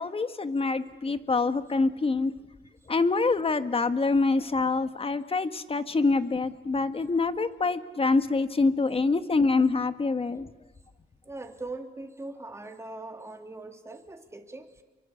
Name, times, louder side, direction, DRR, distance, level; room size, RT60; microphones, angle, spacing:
voice 1, 0.0-2.3 2.9-10.5, left 3 dB, 30° left, 11 dB, 1.6 m, -25 dB
voice 2, 11.2-14.8, right 2 dB, 15° right, 5 dB, 3.1 m, -41 dB
28.5 x 24.0 x 8.5 m, 1.2 s
cardioid pair, 90°, 20 cm